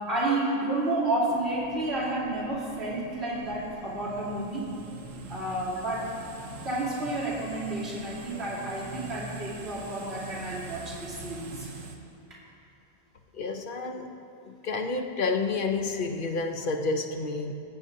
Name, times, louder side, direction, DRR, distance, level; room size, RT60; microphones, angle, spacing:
voice 1, 0.1-4.7 5.3-6.1 6.6-11.7, right 2 dB, 50° right, -10 dB, 3.1 m, -30 dB
sound 1, 1.3-12.0, right 3 dB, 70° right, 1.2 m, -44 dB
voice 2, 13.3-14.1 14.5-17.5, left 3 dB, 50° left, 5 dB, 0.7 m, -30 dB
20.0 x 7.9 x 2.7 m, 2.6 s
omnidirectional pair, 1.4 m